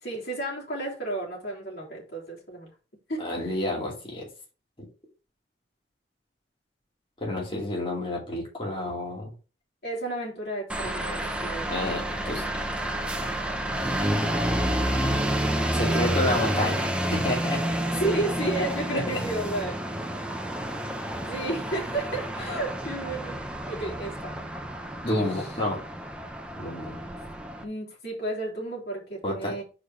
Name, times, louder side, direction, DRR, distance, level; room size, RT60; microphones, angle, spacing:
voice 1, 0.0-2.7 3.1-3.2 9.8-11.8 12.1-12.3 14.2-14.3 15.8-16.8 17.9-19.7 21.2-23.4 23.7-24.3 25.0-25.5 27.6-29.6, right 2 dB, 60° left, -3 dB, 3.1 m, -32 dB
voice 2, 3.2-4.3 4.8-4.9 7.2-9.3 11.7-12.5 15.7-17.6 18.9-19.0 25.0-25.8 26.6-27.0 29.2-29.5, left 1 dB, 30° left, -3 dB, 2.5 m, -29 dB
sound 1, 10.7-27.6, right 1 dB, 5° right, 0.8 m, -29 dB
4.9 x 4.5 x 5.8 m, 0.34 s
head